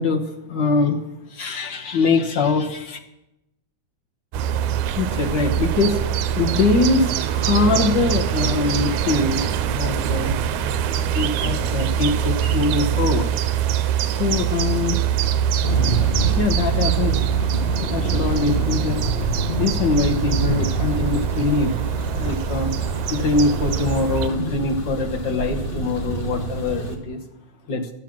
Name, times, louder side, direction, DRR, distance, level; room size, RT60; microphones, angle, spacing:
voice 1, 0.0-3.0 4.9-6.0 6.3-10.3 11.0-13.3 14.2-15.0 16.3-17.2 17.8-19.0 19.5-21.8 22.1-22.7 23.1-27.2 27.7-27.9, left 3 dB, 60° left, 2 dB, 1.1 m, -23 dB
sound 1, 4.3-24.3, right 9 dB, 85° right, 2.1 m, -23 dB
sound 2, 4.6-10.2, right 5 dB, 30° right, 4.6 m, -40 dB
Thunder, 15.6-27.0, right 1 dB, 35° left, 1.0 m, -27 dB
14.0 x 7.6 x 7.5 m, 0.88 s
omnidirectional pair, 3.4 m